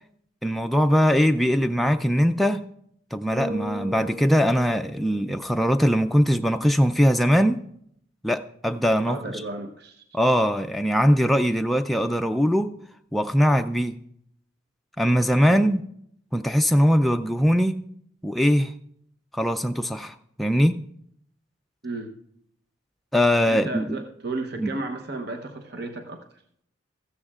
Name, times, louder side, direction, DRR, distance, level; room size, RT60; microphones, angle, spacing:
voice 1, 0.4-2.7 3.1-7.6 8.2-9.2 10.1-12.7 13.1-13.9 15.0-15.8 16.3-17.8 18.2-18.7 19.3-20.8 23.1-24.0 24.6-24.7, equal, ahead, 0.3 m, -21 dB
Bass guitar, 3.3-5.7, right 1 dB, 90° right, 3.4 m, -36 dB
voice 2, 9.1-10.0 15.5-15.6 21.8-22.1 23.5-26.2, right 2 dB, 55° right, 0.9 m, -33 dB
16.0 x 14.0 x 2.4 m
head